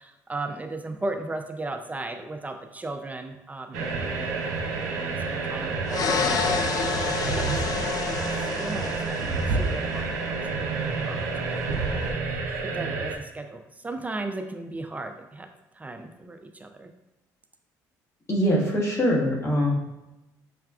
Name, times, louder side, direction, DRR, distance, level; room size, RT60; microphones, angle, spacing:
voice 1, 0.0-8.2 8.6-8.9 9.2-10.7 11.0-11.2 11.5-11.8 12.7-15.5 15.8-16.9, right 2 dB, 20° right, 6 dB, 0.3 m, -36 dB
sound 1, 3.7-12.1, right 4 dB, ahead, 1.0 m, -36 dB
sound 2, 3.7-13.2, right 4 dB, 90° right, 0.4 m, -30 dB
sound 3, 5.9-9.8, left 5 dB, 50° left, 0.4 m, -29 dB
voice 2, 18.3-19.7, equal, 35° left, -4 dB, 1.2 m, -23 dB
5.7 x 2.3 x 2.3 m, 0.97 s
supercardioid pair, 75°, 8 cm